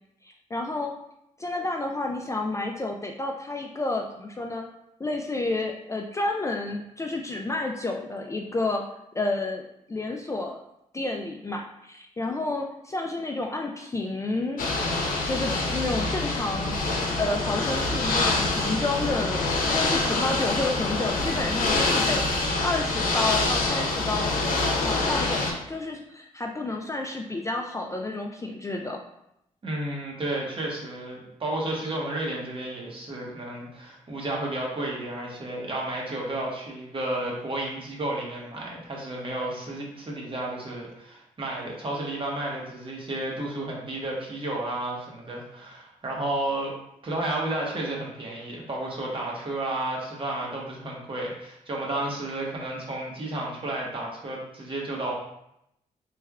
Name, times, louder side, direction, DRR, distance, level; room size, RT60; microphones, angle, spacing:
voice 1, 0.2-0.9 1.4-4.7 5.0-8.9 9.1-10.6 10.9-14.7 15.2-16.8 17.2-24.3 24.8-29.0, left 2 dB, 20° left, 2 dB, 0.4 m, -30 dB
Ocean / Boat Water vehicle, 14.6-25.5, left 2 dB, 85° left, 0.7 m, -26 dB
voice 2, 29.6-46.7 47.0-55.1, right 1 dB, 40° right, -2 dB, 1.1 m, -32 dB
3.4 x 3.2 x 2.3 m, 0.79 s
cardioid pair, 70°, 14 cm